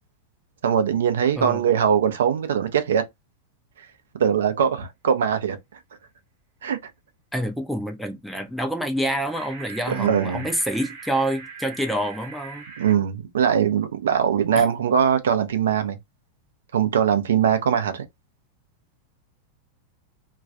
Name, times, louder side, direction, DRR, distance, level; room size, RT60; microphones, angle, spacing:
voice 1, 0.6-3.0 4.1-5.6 6.6-6.8 9.9-10.4 12.8-16.0 16.7-18.0, right 8 dB, 65° right, 0.5 m, -21 dB
voice 2, 7.3-12.6 14.6-14.7, right 1 dB, ahead, 0.5 m, -27 dB
sound 1, 9.0-13.0, right 6 dB, 45° right, 0.9 m, -41 dB
2.3 x 2.3 x 2.3 m
figure-of-eight pair, 90°, 0 cm